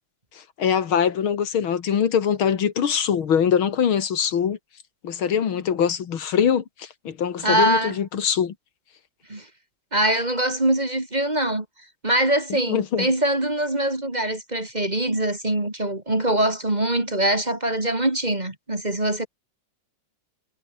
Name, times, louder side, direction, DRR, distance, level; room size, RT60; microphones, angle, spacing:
voice 1, 0.6-4.6 5.0-8.5 12.5-13.1, left 8 dB, 80° left, 2.5 m, -23 dB
voice 2, 7.4-8.0 9.3-9.5 9.9-11.7 12.0-19.3, right 1 dB, 20° right, 2.6 m, -23 dB
omnidirectional pair, 2.3 m